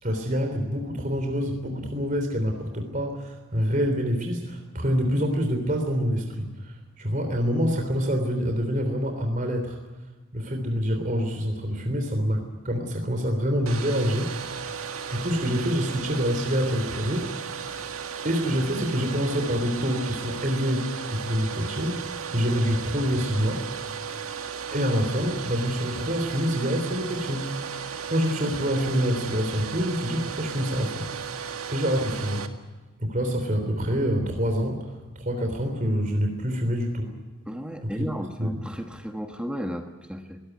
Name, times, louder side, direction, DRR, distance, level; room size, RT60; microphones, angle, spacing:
voice 1, 0.0-9.8 10.3-14.3 15.1-17.6 18.2-22.1 22.3-23.7 24.7-27.5 28.1-31.1 31.7-32.5 33.0-34.9 35.1-37.1 37.8-37.9 38.4-38.6, equal, 35° right, 4 dB, 3.5 m, -26 dB
Domestic sounds home sounds, 13.6-32.5, right 7 dB, 80° right, 1.9 m, -35 dB
voice 2, 37.5-40.4, equal, 5° right, 4 dB, 1.3 m, -34 dB
22.0 x 19.0 x 9.3 m, 1.3 s
head